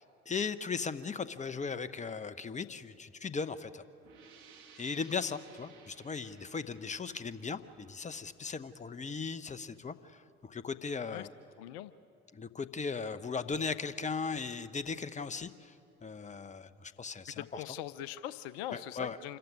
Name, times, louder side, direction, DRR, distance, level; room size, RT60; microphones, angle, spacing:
voice 1, 0.0-3.8 4.8-11.3 12.3-15.7 16.0-17.6 18.7-19.4, left 5 dB, 20° left, 14 dB, 1.0 m, -38 dB
sound 1, 4.0-9.5, right 6 dB, 70° right, 2.2 m, -59 dB
voice 2, 11.6-11.9 17.4-19.4, left 12 dB, 70° left, 16 dB, 0.7 m, -41 dB
26.5 x 14.5 x 9.8 m, 2.7 s
hypercardioid pair, 55°, 33 cm